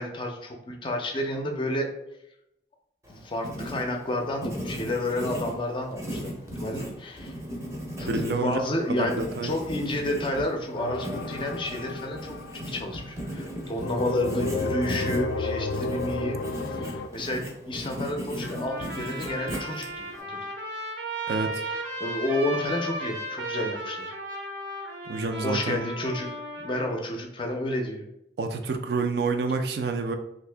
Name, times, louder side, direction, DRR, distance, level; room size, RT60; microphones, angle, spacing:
voice 1, 0.0-1.9 3.1-7.3 8.0-20.5 21.7-24.1 25.4-26.3 26.6-28.1, left 1 dB, 30° left, 3 dB, 0.4 m, -31 dB
Writing, 3.0-20.2, equal, 15° right, 0.6 m, -37 dB
voice 2, 8.0-8.6 8.9-9.5 21.3-21.6 25.1-25.8 28.4-30.2, right 3 dB, 60° right, 6 dB, 0.4 m, -28 dB
sound 1, 10.8-13.2 13.8-17.1, left 3 dB, 90° left, 0.3 m, -32 dB
Trumpet, 18.4-27.0, right 1 dB, 80° right, 0.8 m, -35 dB
2.7 x 2.5 x 3.3 m, 0.83 s
head